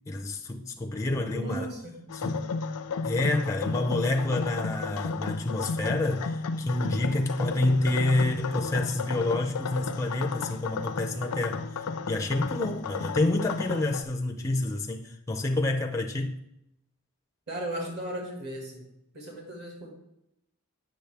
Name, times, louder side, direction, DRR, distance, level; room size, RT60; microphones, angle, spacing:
voice 1, 0.0-1.7 2.1-2.5 3.0-16.4, left 2 dB, 15° left, 0.4 m, -28 dB
voice 2, 1.3-1.9 17.5-18.9 19.1-19.9, right 1 dB, 45° right, 1.7 m, -36 dB
sound 1, 2.1-14.0, left 4 dB, 80° left, 0.4 m, -33 dB
8.1 x 6.3 x 3.3 m
head